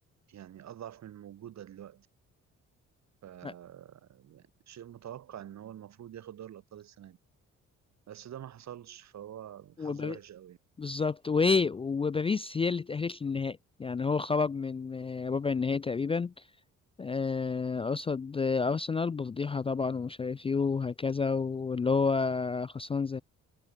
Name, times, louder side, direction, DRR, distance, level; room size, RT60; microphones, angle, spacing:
voice 1, 0.3-2.1 3.2-7.2 8.1-10.6, right 10 dB, 65° right, 2.4 m, -46 dB
voice 2, 9.8-10.2 10.8-16.3 17.0-23.2, left 4 dB, 20° left, 0.3 m, -30 dB
cardioid pair, 90°, 30 cm